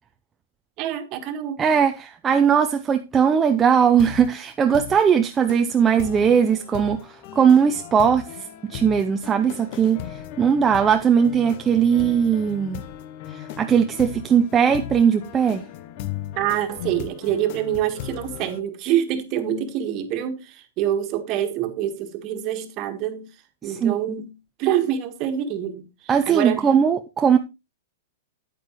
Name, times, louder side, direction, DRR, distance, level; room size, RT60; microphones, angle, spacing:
voice 1, 0.8-1.6 16.3-23.3 23.6-24.3 24.6-26.7, right 10 dB, 40° right, 1.6 m, -26 dB
voice 2, 1.6-7.0 7.3-8.3 8.6-12.8 13.3-15.6 23.6-24.0 26.1-27.4, right 7 dB, 20° right, 0.6 m, -19 dB
sound 1, 4.0-4.3 4.7-5.0 5.5-5.6 6.0-18.6, left 10 dB, 50° left, 0.9 m, -37 dB
9.2 x 8.9 x 3.1 m
hypercardioid pair, 110°, 0 cm